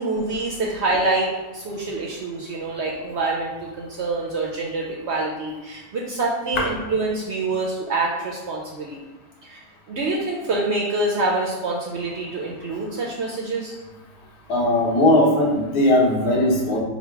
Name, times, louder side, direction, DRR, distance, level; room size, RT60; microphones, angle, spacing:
voice 1, 0.0-9.0 9.4-9.6 9.9-13.7, right 2 dB, 65° right, -2 dB, 0.7 m, -26 dB
voice 2, 14.5-16.8, left 1 dB, 85° left, -3 dB, 1.5 m, -18 dB
4.0 x 2.1 x 4.4 m, 1.1 s
omnidirectional pair, 1.6 m